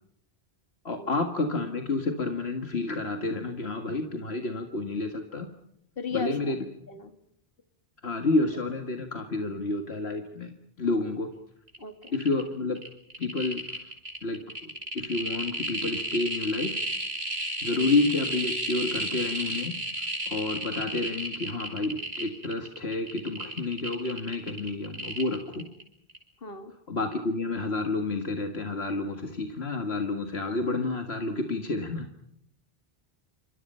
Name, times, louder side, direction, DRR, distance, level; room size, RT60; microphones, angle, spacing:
voice 1, 0.8-5.5 6.1-6.6 8.0-10.5 10.8-11.3 12.1-12.8 13.2-13.6 14.2-16.8 17.6-19.8 20.3-25.7 26.9-32.1, left 3 dB, 75° left, 5 dB, 2.1 m, -29 dB
voice 2, 6.0-6.5 6.9-7.1 11.8-12.2 17.7-17.9 26.4-26.7, left 5 dB, 60° left, 8 dB, 2.7 m, -36 dB
sound 1, 11.7-11.8 12.0-12.4 12.8-25.8 26.1-26.2, right 1 dB, 75° right, 6.2 m, -33 dB
28.5 x 26.5 x 5.6 m, 0.72 s
omnidirectional pair, 1.1 m